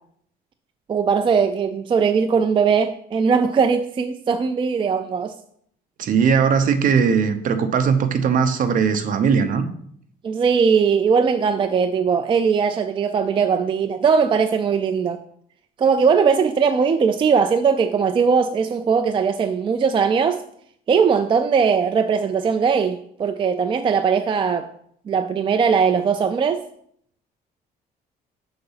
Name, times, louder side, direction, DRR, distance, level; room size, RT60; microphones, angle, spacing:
voice 1, 0.9-5.3 10.2-15.2 15.8-20.4 20.9-24.7 25.1-26.6, right 6 dB, 30° right, 8 dB, 0.4 m, -19 dB
voice 2, 6.0-9.7, right 6 dB, 55° right, 9 dB, 0.8 m, -19 dB
6.7 x 4.0 x 5.6 m, 0.66 s
cardioid pair, 110°, 17 cm